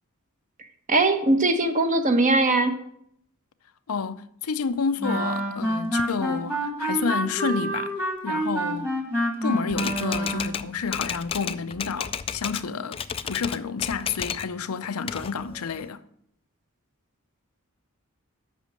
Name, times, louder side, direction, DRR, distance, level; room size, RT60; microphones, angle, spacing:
voice 1, 0.9-2.7, right 2 dB, 35° right, 1.0 m, -20 dB
voice 2, 3.9-8.9 9.4-16.0, left 5 dB, 85° left, 0.6 m, -30 dB
sound 1, 5.0-10.7, right 1 dB, 10° right, 1.5 m, -27 dB
Typewriter, 9.7-12.7 12.9-14.5 14.8-15.9, left 7 dB, 25° left, 0.3 m, -33 dB
8.3 x 6.1 x 7.5 m
head